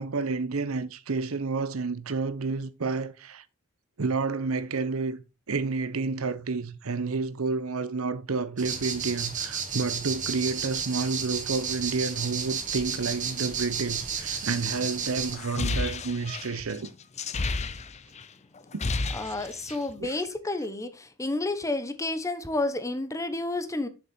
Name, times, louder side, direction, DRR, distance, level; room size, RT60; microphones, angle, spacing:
voice 1, 0.0-3.4 4.0-16.9 20.0-20.1, right 4 dB, 75° right, 0.8 m, -30 dB
sound 1, 8.6-15.4, right 6 dB, 35° right, 1.4 m, -32 dB
sound 2, 15.3-18.2 18.6-19.9, left 3 dB, 30° left, 0.6 m, -31 dB
voice 2, 19.1-23.9, left 2 dB, 15° left, 0.9 m, -30 dB
7.2 x 6.6 x 4.3 m
head